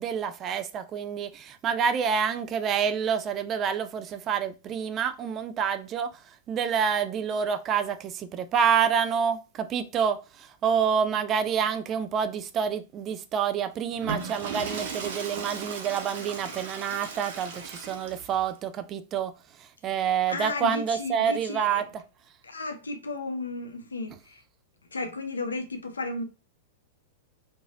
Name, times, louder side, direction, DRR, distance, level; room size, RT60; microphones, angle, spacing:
voice 1, 0.0-6.1 6.5-10.2 10.6-19.3 19.8-22.0, right 7 dB, 30° right, 0.4 m, -27 dB
Water / Toilet flush, 13.9-18.4, right 5 dB, 60° right, 0.8 m, -37 dB
voice 2, 20.3-21.8 22.4-24.4 24.9-26.2, left 2 dB, 90° left, 0.5 m, -34 dB
3.1 x 2.6 x 2.4 m
hypercardioid pair, 105°, 0 cm